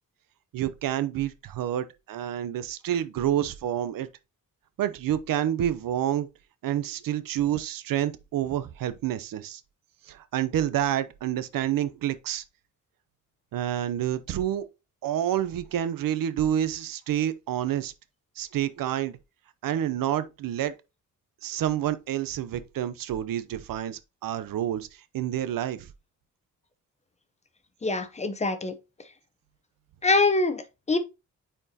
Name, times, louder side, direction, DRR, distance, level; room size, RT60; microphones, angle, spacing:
voice 1, 0.5-4.1 4.8-6.3 6.6-9.6 10.1-12.4 13.5-14.6 15.0-17.9 18.4-19.2 19.6-20.7 21.4-24.9 25.1-25.9, right 11 dB, 90° right, 0.7 m, -28 dB
voice 2, 27.8-28.8 30.0-31.0, left 3 dB, 20° left, 0.7 m, -24 dB
8.9 x 4.4 x 2.8 m
wide cardioid pair, 170°, 33 cm